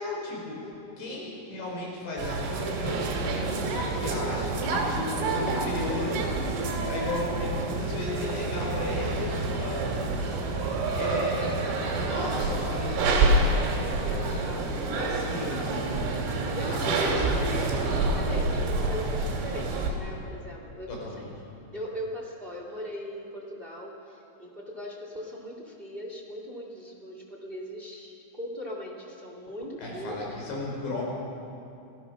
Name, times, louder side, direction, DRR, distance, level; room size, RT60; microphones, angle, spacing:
voice 1, 0.0-0.7 1.0-3.6 3.9-6.3 6.7-9.9 10.9-13.3 13.6-14.4 14.7-16.1 16.7-17.5 20.9-21.3 29.8-31.0, left 2 dB, 60° left, -2 dB, 6.7 m, -35 dB
voice 2, 0.6-1.2 4.0-4.3 14.0-15.3 16.5-21.1 21.7-30.2, equal, 25° right, 0 dB, 1.1 m, -39 dB
sound 1, 2.2-19.9, right 3 dB, 80° right, 5.1 m, -28 dB
27.0 x 16.0 x 6.3 m, 2.7 s
omnidirectional pair, 5.8 m